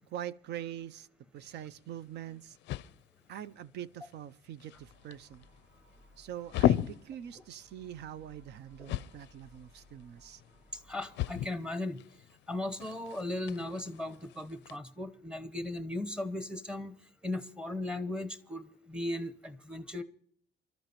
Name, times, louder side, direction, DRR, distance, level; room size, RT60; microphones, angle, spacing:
voice 1, 0.1-1.1 1.3-2.6 3.3-5.5 6.2-10.4, right 10 dB, 70° right, 0.5 m, -43 dB
sound 1, 1.4-14.8, left 12 dB, 90° left, 0.5 m, -38 dB
sound 2, 4.7-11.4, left 1 dB, 90° right, 5.8 m, -62 dB
voice 2, 10.7-12.0 12.5-17.0 17.2-20.0, left 1 dB, 5° right, 0.8 m, -37 dB
27.5 x 13.0 x 3.0 m
cardioid pair, 125°, 18 cm